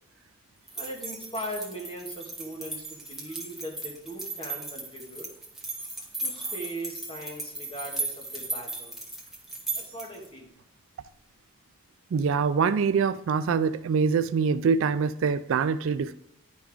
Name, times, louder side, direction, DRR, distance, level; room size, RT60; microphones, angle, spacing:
voice 1, 0.7-5.3 6.2-9.0 9.7-10.5, right 1 dB, 25° left, -1 dB, 1.7 m, -39 dB
sound 1, 0.7-10.3, right 2 dB, ahead, 1.1 m, -36 dB
voice 2, 12.1-16.1, right 5 dB, 65° right, 14 dB, 0.3 m, -24 dB
10.0 x 5.2 x 3.5 m, 0.81 s
head